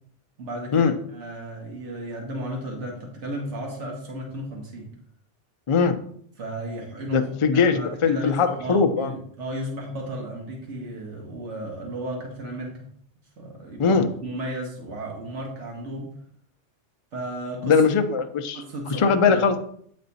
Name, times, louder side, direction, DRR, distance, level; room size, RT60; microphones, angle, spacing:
voice 1, 0.4-4.9 6.4-12.7 13.4-16.1 17.1-17.8 18.5-19.6, right 1 dB, 70° right, 0 dB, 1.8 m, -34 dB
voice 2, 5.7-6.0 7.1-9.1 13.8-14.1 17.6-19.6, left 5 dB, 45° left, 7 dB, 0.4 m, -21 dB
8.5 x 4.2 x 4.1 m, 0.64 s
omnidirectional pair, 1.3 m